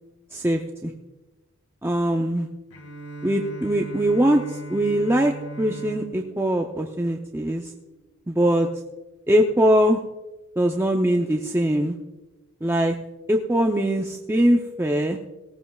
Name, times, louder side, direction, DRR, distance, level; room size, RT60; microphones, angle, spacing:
voice 1, 0.3-0.9 1.8-2.5 3.2-7.7 8.3-8.7 9.3-10.0 10.6-12.0 12.6-13.0 13.3-15.2, right 1 dB, 10° right, 2 dB, 0.5 m, -22 dB
Bowed string instrument, 2.7-8.0, right 1 dB, 80° left, 1.8 m, -39 dB
18.5 x 15.5 x 2.3 m, 1.1 s
head